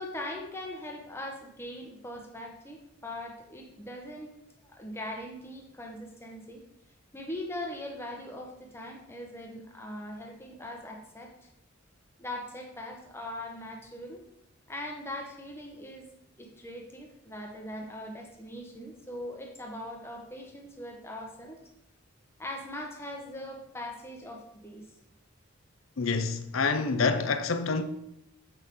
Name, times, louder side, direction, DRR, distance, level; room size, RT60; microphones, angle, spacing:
voice 1, 0.0-4.3 4.6-6.6 7.1-11.3 12.2-14.2 14.7-16.1 16.4-21.6 22.4-24.9, left 1 dB, 10° left, 0.9 m, -40 dB
voice 2, 26.0-27.8, left 4 dB, 75° left, 0.6 m, -27 dB
8.0 x 5.9 x 3.6 m
head